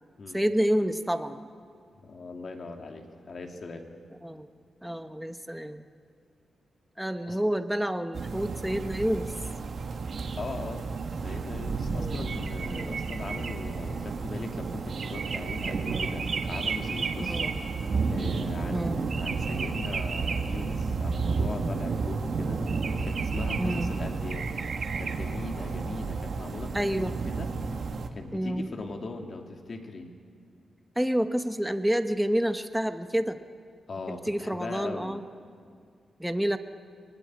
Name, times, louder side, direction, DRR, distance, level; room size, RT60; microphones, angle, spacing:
voice 1, 0.3-1.4 4.2-4.5 4.8-5.8 7.0-9.3 11.9-12.2 12.7-13.0 17.3-17.5 18.7-19.0 23.6-23.9 26.7-27.1 28.3-28.7 31.0-33.4 34.1-35.2 36.2-36.6, equal, 5° right, 8 dB, 1.0 m, -28 dB
voice 2, 1.9-3.9 7.2-7.4 10.3-17.6 18.1-22.6 23.0-24.5 25.0-27.5 28.1-30.1 33.9-35.2, left 3 dB, 50° left, 3 dB, 2.7 m, -40 dB
sound 1, 8.1-28.1, right 4 dB, 60° right, 1.8 m, -31 dB
24.5 x 19.0 x 9.6 m, 2.2 s
cardioid pair, 90°, 0 cm